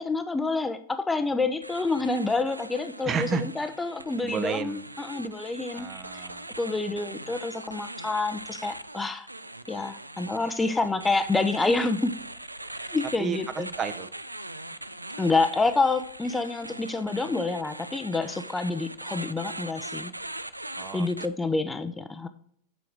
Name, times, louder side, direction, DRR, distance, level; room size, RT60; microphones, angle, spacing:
voice 1, 0.0-5.9 6.6-9.3 9.7-12.1 12.9-13.7 15.2-20.1 20.9-22.3, left 3 dB, 10° left, 10 dB, 0.5 m, -28 dB
sound 1, 1.6-21.3, right 1 dB, 85° right, 0.4 m, -41 dB
voice 2, 3.1-3.5 4.2-4.8 5.7-6.5 13.2-13.4 13.8-14.1 20.8-21.3, right 6 dB, 25° right, 11 dB, 0.7 m, -31 dB
7.5 x 5.1 x 6.0 m, 0.62 s
figure-of-eight pair, 90°, 0 cm